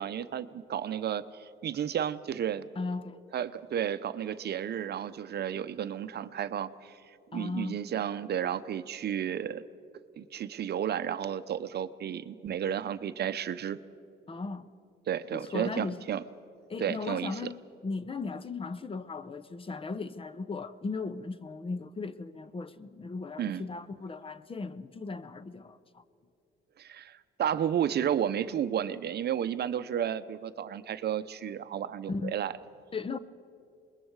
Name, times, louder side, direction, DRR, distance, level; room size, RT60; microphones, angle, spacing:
voice 1, 0.0-2.6 3.3-9.7 10.2-13.8 15.1-16.2 16.8-17.5 23.4-23.6 26.8-32.5, right 9 dB, 55° right, 0.7 m, -32 dB
voice 2, 2.8-3.2 7.3-7.8 14.3-14.7 15.3-16.0 16.7-17.6 17.8-26.0 32.1-32.4 32.9-33.2, left 4 dB, 25° left, 0.7 m, -37 dB
27.0 x 21.5 x 4.7 m
cardioid pair, 90°, 20 cm